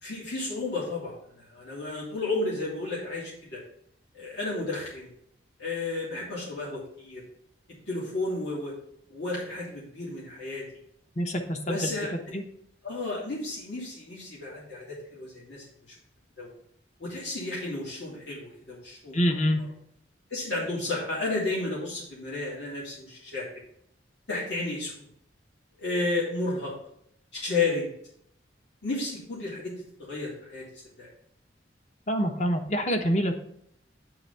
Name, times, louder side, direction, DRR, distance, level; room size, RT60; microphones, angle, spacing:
voice 1, 0.0-3.6 4.1-5.1 5.6-7.2 7.9-8.7 9.1-10.6 11.6-12.4 12.8-15.9 16.4-16.5 17.0-19.2 20.3-23.5 24.3-25.1 25.8-26.7 27.3-27.9 28.8-29.7 30.0-30.7 31.0-31.1, left 2 dB, 70° left, -6 dB, 2.2 m, -32 dB
voice 2, 11.2-12.4 19.1-19.6 32.1-33.3, equal, 40° left, 4 dB, 0.9 m, -26 dB
8.8 x 3.4 x 5.5 m, 0.69 s
head